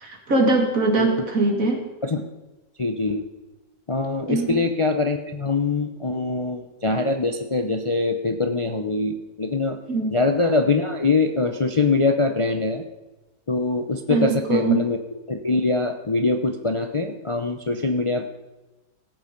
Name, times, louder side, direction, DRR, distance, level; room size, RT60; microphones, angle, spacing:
voice 1, 0.0-1.9 4.3-4.6 9.9-10.1 14.1-14.9, right 3 dB, 65° right, 2 dB, 2.8 m, -22 dB
voice 2, 2.8-3.2 3.9-9.8 10.1-12.8 13.5-15.0 15.3-18.3, left 3 dB, 30° left, 5 dB, 0.6 m, -23 dB
17.5 x 8.5 x 5.2 m, 1.1 s
omnidirectional pair, 1.6 m